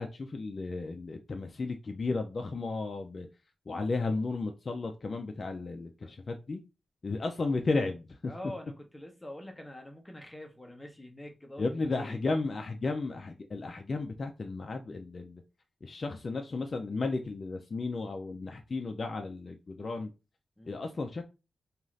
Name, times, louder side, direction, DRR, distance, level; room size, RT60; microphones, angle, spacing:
voice 1, 0.0-3.3 3.7-6.6 7.0-8.3 11.6-15.4 15.8-20.1 20.6-21.2, left 3 dB, 40° left, 0.3 m, -34 dB
voice 2, 8.3-12.2 20.6-20.8, left 1 dB, 10° left, 0.7 m, -45 dB
2.5 x 2.4 x 3.1 m
wide cardioid pair, 115°, 0 cm